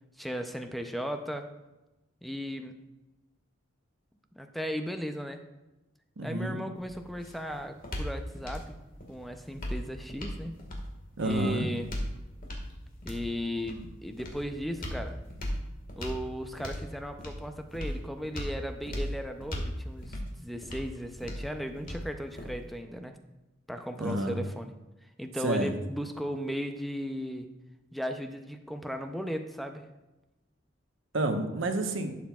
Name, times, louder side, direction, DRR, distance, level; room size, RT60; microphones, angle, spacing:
voice 1, 0.2-1.6 2.2-2.8 4.3-5.4 6.2-8.8 9.1-10.5 11.2-11.9 13.0-15.2 16.0-23.2 23.7-24.7 25.2-27.5 27.9-29.9, equal, ahead, 6 dB, 0.5 m, -36 dB
voice 2, 6.2-6.6 11.2-11.7 24.0-24.4 25.4-25.7 31.1-32.1, right 1 dB, 90° right, 5 dB, 1.0 m, -29 dB
sound 1, 6.8-22.8, equal, 45° left, 1.7 m, -39 dB
11.5 x 7.4 x 2.3 m, 1.0 s
head